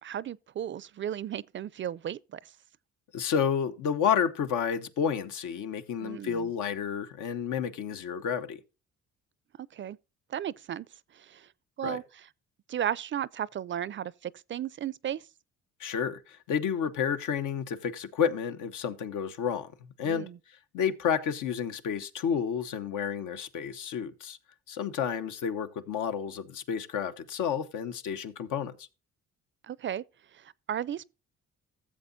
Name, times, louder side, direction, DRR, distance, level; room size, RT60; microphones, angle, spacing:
voice 1, 0.0-2.5 6.0-6.5 9.7-10.0 10.3-10.9 11.1-11.5 11.8-12.3 12.7-15.2 20.0-20.4 29.6-30.0 30.3-31.0, right 10 dB, 40° right, 0.4 m, -35 dB
voice 2, 3.1-8.6 11.8-12.0 15.8-19.7 20.0-20.3 20.7-24.4 24.7-28.9, left 7 dB, 85° left, 1.0 m, -30 dB
14.5 x 7.3 x 2.7 m
cardioid pair, 90°, 30 cm